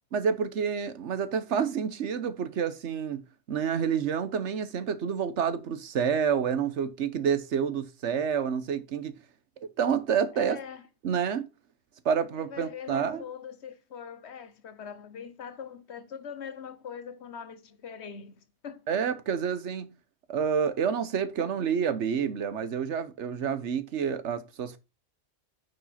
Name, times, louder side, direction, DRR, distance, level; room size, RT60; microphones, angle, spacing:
voice 1, 0.1-3.2 3.5-9.1 9.6-10.6 11.0-11.5 12.0-13.2 18.9-19.9 20.3-24.8, right 7 dB, 80° right, 1.2 m, -28 dB
voice 2, 10.3-10.8 12.3-18.8, left 7 dB, 70° left, 1.2 m, -42 dB
9.8 x 5.4 x 4.2 m
omnidirectional pair, 1.2 m